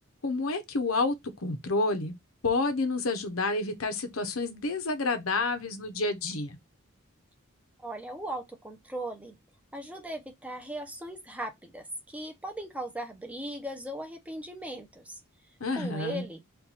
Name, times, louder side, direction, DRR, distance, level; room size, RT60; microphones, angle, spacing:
voice 1, 0.2-1.1 1.4-2.1 2.4-6.6 15.6-16.3, left 3 dB, 75° left, 0.9 m, -29 dB
voice 2, 7.8-9.3 9.7-15.2 15.8-16.4, right 1 dB, 5° right, 0.8 m, -38 dB
4.5 x 2.6 x 4.0 m
head